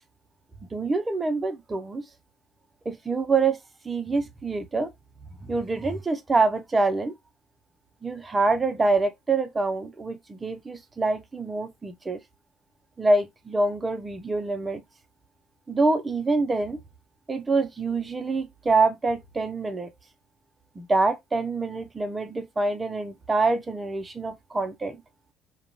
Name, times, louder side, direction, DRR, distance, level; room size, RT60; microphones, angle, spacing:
voice 1, 0.7-2.0 2.9-3.6 3.8-4.9 5.4-7.1 8.0-12.2 13.0-14.8 15.7-16.8 17.3-19.9 20.8-25.0, right 3 dB, 25° right, 0.7 m, -25 dB
2.5 x 2.3 x 3.0 m
hypercardioid pair, 60°, 0 cm